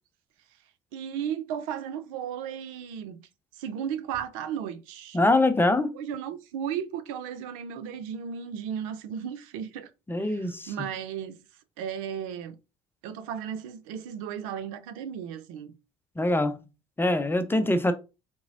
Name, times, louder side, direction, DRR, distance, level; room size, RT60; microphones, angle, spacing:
voice 1, 0.9-3.3 3.6-5.2 5.9-9.9 10.2-11.4 11.8-12.6 13.0-15.7, right 8 dB, 75° right, 0.5 m, -35 dB
voice 2, 5.1-5.9 10.1-10.7 16.2-16.6 17.0-17.9, left 2 dB, 10° left, 0.6 m, -23 dB
3.7 x 2.9 x 2.6 m
hypercardioid pair, 60°, 18 cm